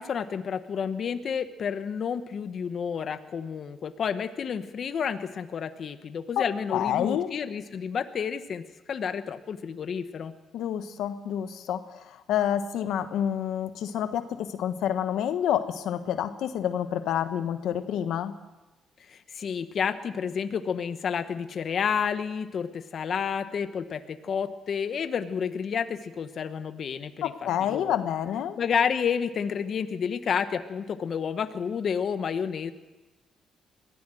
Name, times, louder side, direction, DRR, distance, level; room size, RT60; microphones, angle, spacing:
voice 1, 0.0-10.3 19.1-27.3 27.7-28.0 28.6-32.7, left 7 dB, 55° left, 9 dB, 1.2 m, -30 dB
voice 2, 6.4-7.3 10.5-18.3 27.2-28.6, left 10 dB, 80° left, 9 dB, 1.3 m, -28 dB
23.0 x 15.5 x 7.9 m, 1.1 s
cardioid pair, 90°, 0 cm